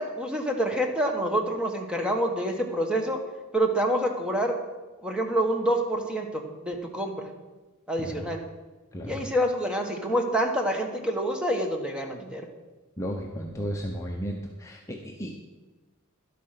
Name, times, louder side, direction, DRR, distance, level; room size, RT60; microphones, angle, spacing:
voice 1, 0.0-3.2 3.5-4.6 5.0-7.3 7.9-8.4 9.1-12.5, right 1 dB, 5° right, 3 dB, 1.3 m, -27 dB
voice 2, 13.0-15.3, equal, 15° left, 0 dB, 0.8 m, -34 dB
11.5 x 8.3 x 5.8 m, 1.2 s
head